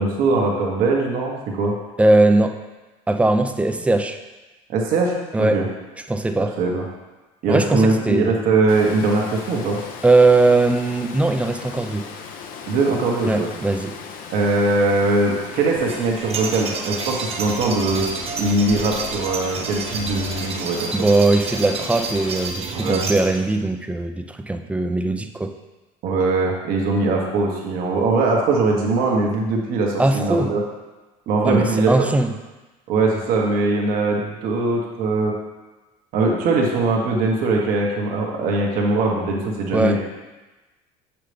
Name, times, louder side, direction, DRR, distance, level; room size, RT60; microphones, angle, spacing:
voice 1, 0.0-1.7 4.7-5.6 6.4-6.8 7.4-9.8 12.7-13.5 14.3-18.0 18.4-20.9 22.7-23.0 26.0-30.6 31.3-32.1 32.9-35.3 36.1-40.0, right 3 dB, 65° right, -1 dB, 1.3 m, -21 dB
voice 2, 2.0-2.6 3.1-4.2 5.3-5.6 6.1-6.5 7.5-8.4 10.0-12.0 13.3-13.9 20.9-25.5 30.0-30.5 31.5-32.3 39.7-40.0, right 2 dB, 10° right, 7 dB, 0.5 m, -19 dB
Water, 8.7-22.5, left 6 dB, 65° left, 0.7 m, -38 dB
sound 1, 15.8-23.6, right 4 dB, 40° right, 0.8 m, -30 dB
6.5 x 5.8 x 3.4 m, 1.1 s
supercardioid pair, 110°, 16 cm